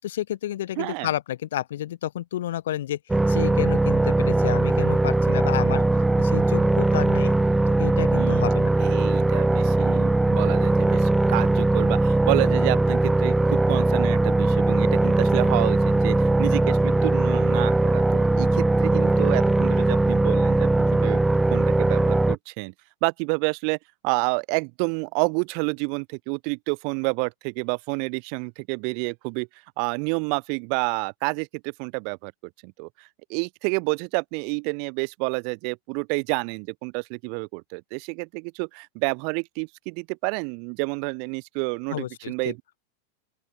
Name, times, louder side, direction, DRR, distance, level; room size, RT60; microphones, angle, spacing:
voice 1, 0.0-3.0 3.3-7.3 7.8-8.7 41.9-42.5, left 12 dB, 60° left, 6.0 m, -30 dB
voice 2, 0.8-1.1 8.2-8.5 8.8-21.2 21.5-22.7 23.0-23.8 24.0-29.5 29.8-32.3 32.6-42.6, right 40 dB or more, 45° right, 6.1 m, -29 dB
sound 1, 3.1-22.4, right 2 dB, 5° right, 4.5 m, -20 dB
open air
figure-of-eight pair, 90°, 0 cm